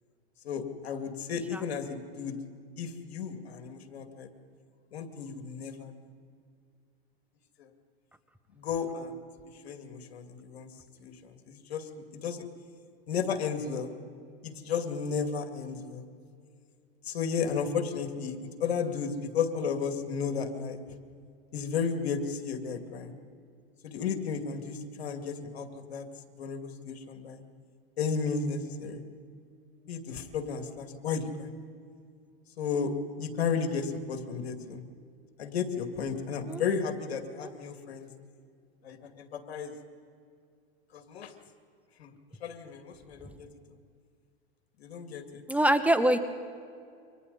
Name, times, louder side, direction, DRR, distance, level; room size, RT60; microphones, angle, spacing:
voice 1, 0.4-2.4 2.8-4.3 4.9-5.9 7.6-7.7 8.5-9.2 9.6-10.7 11.0-12.5 13.1-13.9 14.4-16.0 17.0-20.8 21.5-23.2 23.8-26.0 26.3-27.4 28.0-29.0 29.9-31.5 32.6-32.9 33.2-34.8 35.4-38.1 38.8-39.7 40.9-41.3 42.0-42.1 42.4-43.5 44.8-45.4, left 6 dB, 85° left, 6 dB, 2.6 m, -33 dB
voice 2, 45.5-46.2, right 1 dB, 5° right, 9 dB, 1.0 m, -23 dB
29.0 x 25.0 x 4.2 m, 2.3 s
hypercardioid pair, 120°, 31 cm